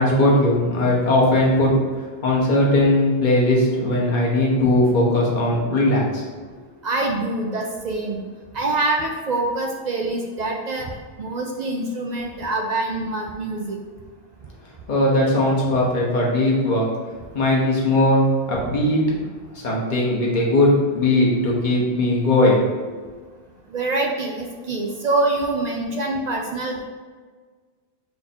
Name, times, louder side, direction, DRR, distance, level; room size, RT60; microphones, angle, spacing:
voice 1, 0.0-1.7 2.2-6.2 14.9-16.9 17.3-19.2 19.5-22.6, left 1 dB, 50° left, -4 dB, 1.1 m, -19 dB
voice 2, 6.8-8.2 8.5-10.9 11.2-13.8 23.7-26.8, right 2 dB, 55° right, 1 dB, 0.5 m, -25 dB
4.4 x 2.6 x 4.2 m, 1.5 s
omnidirectional pair, 1.0 m